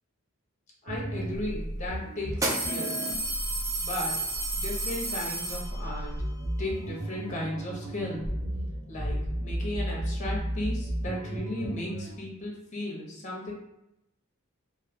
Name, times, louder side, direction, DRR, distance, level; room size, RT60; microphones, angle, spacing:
voice 1, 0.8-3.1 3.8-4.2 4.5-6.1 6.6-8.3 8.9-13.5, left 1 dB, 35° left, -2 dB, 0.7 m, -35 dB
sound 1, 0.9-12.1, right 1 dB, 65° right, 0.7 m, -34 dB
sound 2, 1.2-1.3 2.3-6.1, right 2 dB, 15° right, 0.5 m, -32 dB
3.1 x 2.3 x 2.5 m, 0.85 s
head